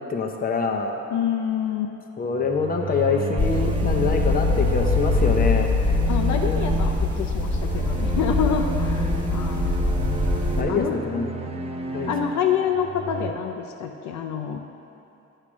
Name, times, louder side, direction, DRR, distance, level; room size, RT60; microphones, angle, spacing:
voice 1, 0.0-1.0 2.2-5.7 9.8-9.9 10.6-11.3 11.9-12.1, left 5 dB, 30° left, 3 dB, 0.6 m, -25 dB
voice 2, 1.1-1.9 6.1-9.8 10.7-10.9 12.1-14.6, left 8 dB, 70° left, 3 dB, 0.6 m, -27 dB
sound 1, 2.4-13.3, right 3 dB, 20° right, 0.5 m, -30 dB
sound 2, 3.4-10.6, left 3 dB, 5° left, 1.2 m, -23 dB
8.3 x 3.3 x 6.0 m, 2.8 s
cardioid pair, 90°, 30 cm